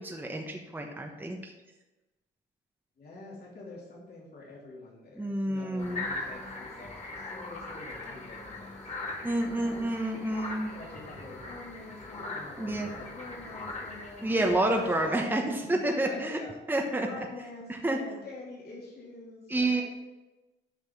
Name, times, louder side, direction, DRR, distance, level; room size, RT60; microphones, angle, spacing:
voice 1, 0.0-1.5 5.2-6.1 9.2-10.7 12.6-12.9 14.2-16.4 16.7-17.3 17.7-18.0 19.5-19.8, right 1 dB, 10° right, 1 dB, 1.1 m, -29 dB
voice 2, 3.0-10.4 10.7-15.4 15.6-16.5 16.8-19.8, left 3 dB, 55° left, -5 dB, 3.1 m, -46 dB
sound 1, 5.8-15.1, left 2 dB, 35° left, 2.0 m, -40 dB
8.2 x 5.3 x 5.3 m, 1.1 s
cardioid pair, 90°, 20 cm